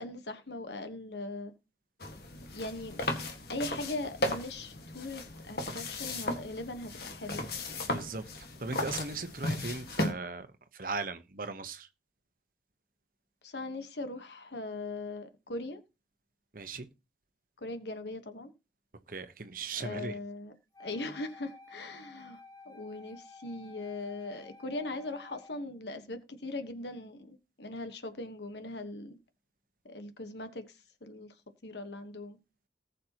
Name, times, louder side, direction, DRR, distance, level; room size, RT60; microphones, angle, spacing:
voice 1, 0.0-1.5 2.5-3.1 3.5-7.4 13.4-15.8 17.6-18.5 19.8-20.5 20.8-22.4 22.6-29.2 29.8-31.3 31.6-32.4, left 2 dB, 75° left, 1.3 m, -40 dB
sound 1, 2.0-10.1, left 1 dB, 60° left, 1.8 m, -36 dB
voice 2, 7.9-10.5 10.7-11.9 16.5-16.9 19.1-20.2, right 3 dB, 50° right, 1.1 m, -38 dB
Wind instrument woodwind instrument, 20.7-25.6, left 3 dB, 20° left, 4.1 m, -53 dB
19.0 x 6.6 x 3.0 m
head